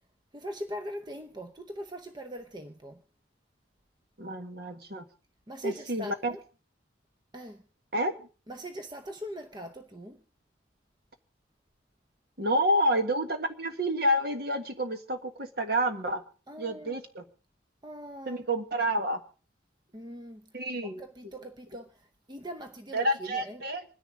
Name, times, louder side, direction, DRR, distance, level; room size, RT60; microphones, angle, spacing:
voice 1, 0.3-3.0 5.5-6.4 7.3-7.6 8.5-10.2 16.5-17.0 17.8-18.4 19.9-20.5 20.8-22.0 22.3-23.6, equal, 20° right, 0.7 m, -41 dB
voice 2, 4.2-5.0 5.6-6.3 7.9-8.1 12.4-16.2 16.6-17.2 18.2-19.2 20.5-21.0 22.9-23.8, right 1 dB, 55° right, 1.5 m, -29 dB
26.5 x 10.0 x 3.7 m
head